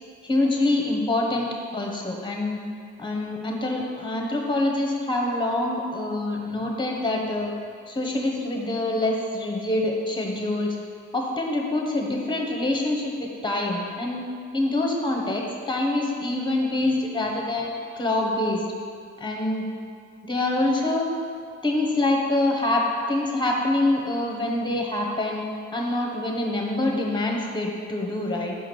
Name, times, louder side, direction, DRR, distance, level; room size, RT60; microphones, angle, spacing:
voice 1, 0.2-2.6 3.0-7.5 7.9-10.8 11.1-13.1 13.4-14.2 14.5-18.6 19.2-19.7 20.2-21.1 21.6-25.4 25.7-28.6, left 2 dB, 15° left, 0 dB, 1.2 m, -25 dB
5.0 x 4.9 x 6.2 m, 2.2 s
cardioid pair, 90°, 30 cm